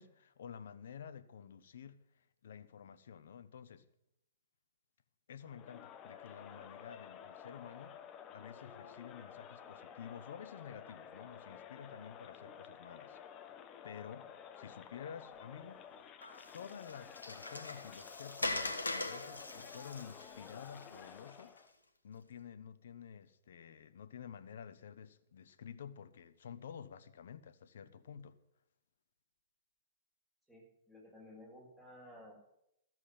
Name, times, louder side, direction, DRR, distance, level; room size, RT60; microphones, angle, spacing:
voice 1, 0.0-3.9 5.3-13.5 13.8-14.3 14.6-15.9 16.5-21.5 22.0-28.4, left 7 dB, 65° left, 1.1 m, -51 dB
Crowd, 5.4-21.7, left 8 dB, 30° left, 1.3 m, -52 dB
Water, 16.2-21.6, left 2 dB, 85° left, 1.4 m, -42 dB
voice 2, 30.5-32.3, left 1 dB, 10° right, 7.4 m, -55 dB
14.0 x 7.7 x 9.6 m
figure-of-eight pair, 110°, 0 cm